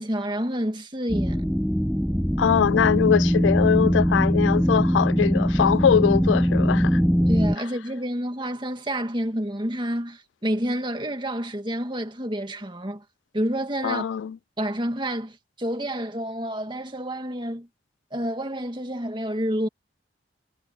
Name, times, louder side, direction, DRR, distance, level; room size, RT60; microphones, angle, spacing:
voice 1, 0.0-1.5 7.3-13.0 13.3-14.1 14.6-17.7 18.1-19.7, right 1 dB, 25° right, 2.1 m, -29 dB
sound 1, 1.1-7.5, equal, ahead, 0.7 m, -21 dB
voice 2, 2.4-7.0 13.8-14.4, left 8 dB, 90° left, 0.3 m, -22 dB
head